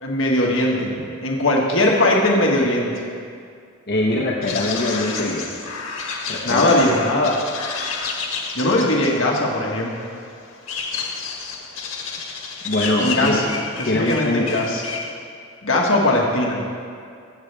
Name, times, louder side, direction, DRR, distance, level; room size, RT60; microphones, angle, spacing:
voice 1, 0.0-0.9 1.2-2.9 6.4-7.4 8.5-10.0 13.0-13.5 13.8-14.8 15.6-16.6, left 1 dB, 65° left, -2 dB, 1.5 m, -19 dB
voice 2, 3.9-5.5 6.3-6.8 12.6-13.4 13.8-14.6, left 2 dB, 50° left, -3 dB, 1.1 m, -22 dB
sound 1, 4.4-15.1, left 4 dB, 85° left, 1.7 m, -30 dB
22.5 x 8.2 x 3.4 m, 2.3 s
head